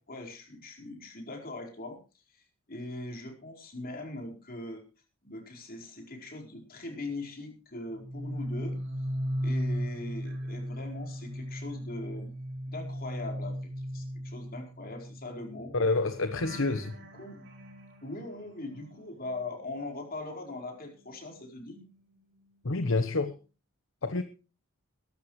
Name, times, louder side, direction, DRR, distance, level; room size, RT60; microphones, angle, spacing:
voice 1, 0.0-2.0 2.3-2.4 2.7-4.8 5.2-8.8 9.4-12.3 12.7-15.7 17.2-17.5 18.0-21.8, left 2 dB, 45° left, 4.6 m, -41 dB
sound 1, 7.9-20.2 20.5-22.6 22.9-23.2, equal, 60° right, 6.0 m, -38 dB
voice 2, 15.7-17.0 22.6-23.4 24.0-24.2, left 3 dB, 65° left, 1.1 m, -28 dB
21.5 x 12.0 x 3.2 m
head